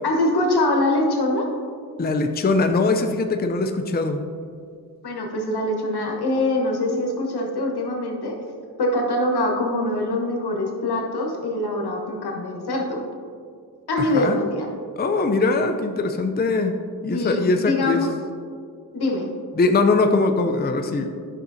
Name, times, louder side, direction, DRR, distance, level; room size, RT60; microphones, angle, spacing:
voice 1, 0.0-1.5 5.0-8.4 8.8-13.0 13.9-14.7 17.1-18.1 18.9-19.3, left 1 dB, 75° left, 1 dB, 1.3 m, -23 dB
voice 2, 2.0-4.2 14.0-14.4 15.0-16.8 17.0-18.1 19.5-21.1, left 3 dB, 25° left, 5 dB, 0.5 m, -21 dB
9.9 x 6.1 x 2.7 m, 2.2 s
cardioid pair, 55°, 40 cm